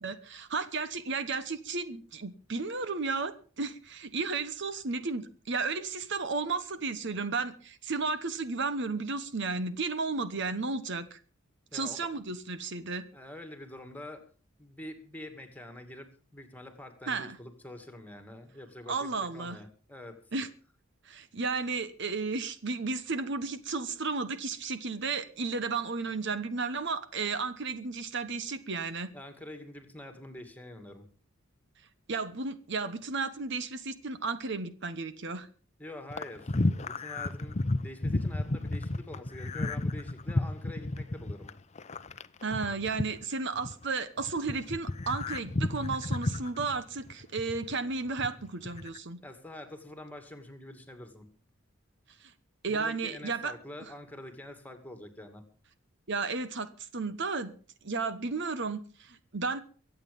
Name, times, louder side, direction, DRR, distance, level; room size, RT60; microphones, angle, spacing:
voice 1, 0.0-11.2 11.7-13.1 17.1-17.4 18.9-19.6 20.3-20.5 21.0-29.1 32.1-35.5 42.4-49.2 52.2-52.3 52.6-53.5 56.1-57.5 57.8-59.6, right 4 dB, 60° right, 12 dB, 1.1 m, -33 dB
voice 2, 11.7-12.1 13.1-14.2 14.6-20.2 29.1-31.1 35.8-41.5 49.2-51.3 52.7-55.4, left 1 dB, 10° left, 8 dB, 2.2 m, -46 dB
sound 1, 36.1-43.9 44.2-47.7 48.1-49.0, left 2 dB, 35° left, 0.7 m, -32 dB
24.0 x 8.2 x 5.3 m, 0.40 s
head